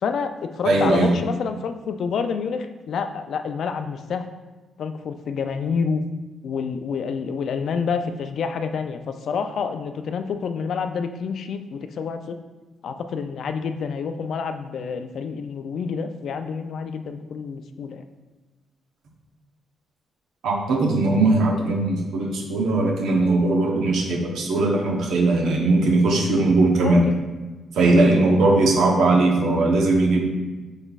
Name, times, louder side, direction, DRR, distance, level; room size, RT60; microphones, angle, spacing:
voice 1, 0.0-4.3 4.8-6.0 6.4-12.4 12.8-18.0 26.8-27.2 28.2-28.4, left 6 dB, 70° left, 8 dB, 0.3 m, -28 dB
voice 2, 0.6-1.1 20.4-27.0 27.7-30.2, right 2 dB, 80° right, 0 dB, 0.9 m, -19 dB
5.1 x 3.9 x 2.4 m, 1.2 s
cardioid pair, 70°, 0 cm